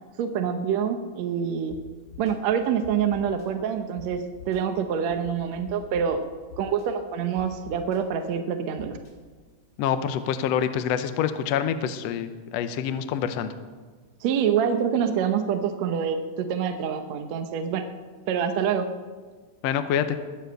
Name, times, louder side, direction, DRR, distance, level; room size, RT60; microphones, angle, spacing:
voice 1, 0.2-1.8 2.2-6.2 6.6-9.0 14.2-17.9 18.3-18.9, right 7 dB, 70° right, 6 dB, 1.8 m, -26 dB
sound 1, 1.7-1.8 2.1-2.3 2.8-3.5 4.0-4.1 4.4-4.6 5.1-6.0 6.5-6.9 7.4-8.0 8.8-9.1, left 7 dB, 40° left, 2.6 m, -44 dB
voice 2, 9.8-13.5 19.6-20.2, left 8 dB, 75° left, 10 dB, 1.6 m, -26 dB
21.0 x 7.2 x 7.8 m, 1.4 s
omnidirectional pair, 3.8 m